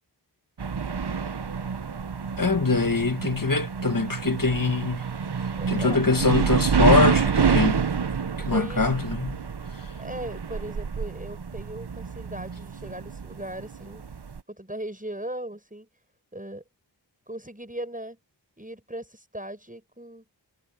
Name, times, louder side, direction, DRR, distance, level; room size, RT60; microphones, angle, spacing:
sound 1, 0.6-14.4, right 6 dB, 65° right, 0.9 m, -27 dB
voice 1, 2.4-5.0 5.7-7.8 8.5-9.4, left 4 dB, 50° left, 1.8 m, -23 dB
voice 2, 5.6-6.0 7.4-7.6 8.4-8.8 10.0-14.1 14.5-15.9 16.3-16.6 17.3-18.2 18.6-20.2, right 1 dB, 20° right, 7.6 m, -38 dB
wide cardioid pair, 45°, 44 cm